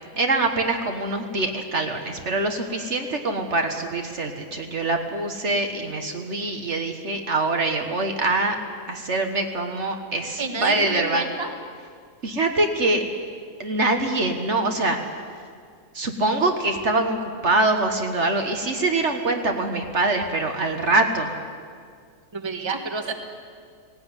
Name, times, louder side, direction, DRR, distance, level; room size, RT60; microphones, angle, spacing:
voice 1, 0.2-8.6 8.9-11.3 12.2-13.0 13.6-15.0 15.9-21.3, right 2 dB, 55° right, 4 dB, 1.7 m, -24 dB
voice 2, 10.4-11.5 22.3-23.1, right 4 dB, 20° right, 5 dB, 1.5 m, -29 dB
18.0 x 17.5 x 9.9 m, 2.1 s
omnidirectional pair, 1.5 m